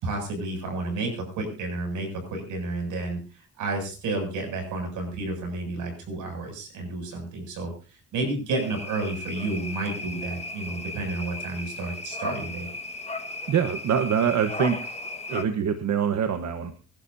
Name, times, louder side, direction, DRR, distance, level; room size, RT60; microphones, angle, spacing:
voice 1, 0.0-3.2 3.6-12.7, right 2 dB, 80° right, 3 dB, 7.4 m, -31 dB
sound 1, 8.5-15.4, left 2 dB, 20° left, 1.6 m, -36 dB
voice 2, 13.5-15.0 15.3-16.7, right 8 dB, 65° right, 8 dB, 1.4 m, -24 dB
24.5 x 12.0 x 2.8 m, 0.36 s
cardioid pair, 90°, 30 cm